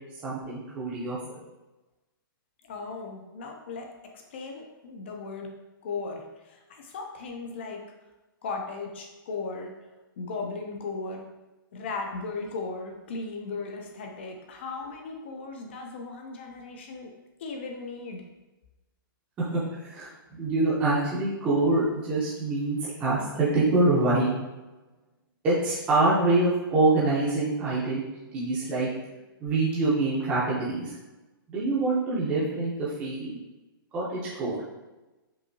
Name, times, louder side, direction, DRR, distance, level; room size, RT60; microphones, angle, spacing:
voice 1, 0.2-1.2 19.4-24.3 25.4-28.0 28.3-28.9 29.4-30.9 31.5-33.4 33.9-34.6, right 2 dB, 10° right, -8 dB, 0.7 m, -25 dB
voice 2, 2.6-5.5 5.8-7.8 8.4-9.7 10.2-11.2 11.7-17.1 17.4-18.2, left 4 dB, 30° left, 2 dB, 0.5 m, -37 dB
5.4 x 2.7 x 2.7 m, 1.1 s
hypercardioid pair, 175°, 12 cm